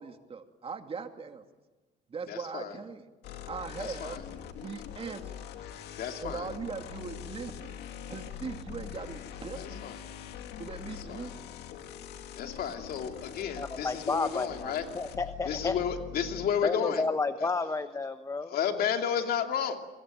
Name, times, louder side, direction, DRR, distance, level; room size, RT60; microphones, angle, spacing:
voice 1, 0.0-1.4 2.1-3.0 3.5-4.2 4.5-5.5 6.2-7.8 8.1-9.8 10.6-11.6, right 5 dB, 35° right, 6 dB, 2.5 m, -40 dB
voice 2, 2.3-2.7 3.8-4.2 6.0-6.5 9.5-10.0 11.1-11.3 12.4-14.8 15.4-17.1 17.4-17.5 18.4-19.8, left 8 dB, 65° left, 5 dB, 2.8 m, -32 dB
sound 1, 3.2-16.5, left 9 dB, 80° left, 2.4 m, -43 dB
voice 3, 13.6-15.8 16.6-18.5, left 3 dB, 20° left, 10 dB, 1.1 m, -31 dB
28.0 x 21.5 x 9.2 m, 1.2 s
cardioid pair, 110°, 17 cm